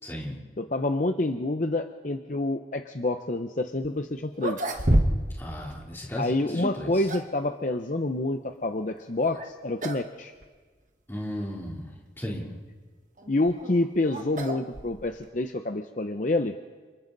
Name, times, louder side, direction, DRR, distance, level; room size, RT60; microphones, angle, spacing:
voice 1, 0.0-0.4 5.4-7.1 11.1-11.9 12.2-12.5, equal, 10° left, -4 dB, 3.5 m, -35 dB
voice 2, 0.6-4.6 6.2-10.3 13.3-16.5, left 2 dB, 45° left, 6 dB, 0.8 m, -28 dB
sound 1, 3.8-3.9 4.3-5.4 5.7-5.8 6.7-7.4 9.2-9.5 9.8-10.1 10.4-10.5 11.3-11.4 13.2-15.3, right 1 dB, 45° right, 1.6 m, -28 dB
30.0 x 27.0 x 4.0 m, 1.4 s
head